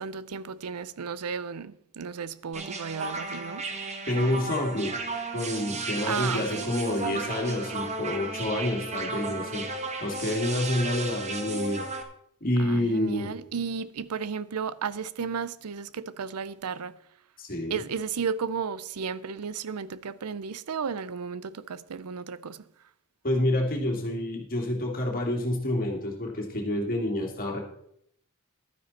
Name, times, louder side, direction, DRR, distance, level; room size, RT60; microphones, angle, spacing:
voice 1, 0.0-3.9 6.0-6.7 7.0-7.3 12.6-17.0 17.7-22.6, right 6 dB, 85° right, 0.6 m, -34 dB
sound 1, 2.5-12.0, right 3 dB, 30° right, 1.3 m, -34 dB
voice 2, 4.1-4.9 5.3-9.7 10.0-11.8 12.4-13.3 17.4-17.8 23.2-27.6, left 1 dB, 40° left, 2.6 m, -28 dB
12.0 x 9.5 x 4.2 m
head